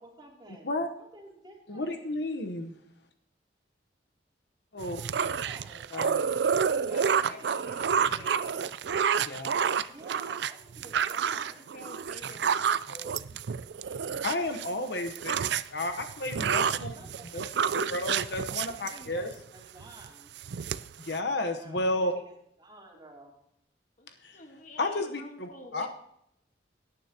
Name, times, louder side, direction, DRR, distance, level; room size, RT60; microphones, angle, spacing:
voice 1, 0.0-2.1 4.8-6.2 6.7-8.6 9.9-11.7 16.9-17.6 18.5-20.3 21.6-22.3 22.6-23.3, right 1 dB, 25° right, -2 dB, 2.9 m, -51 dB
voice 2, 1.7-2.7 4.7-5.0 5.9-6.2 9.1-9.6 14.2-15.4 15.7-17.0 17.3-17.4 17.7-19.3 21.0-22.1 24.2-24.4 24.8-25.9, left 2 dB, 65° left, 6 dB, 1.0 m, -32 dB
sound 1, 4.8-14.7 15.0-19.4 19.8-20.1 20.4-21.2, right 7 dB, 65° right, 0.4 m, -29 dB
voice 3, 6.9-8.5 11.5-13.4 24.0-25.9, left 2 dB, 45° left, 4 dB, 1.5 m, -49 dB
17.5 x 9.4 x 2.9 m, 0.75 s
head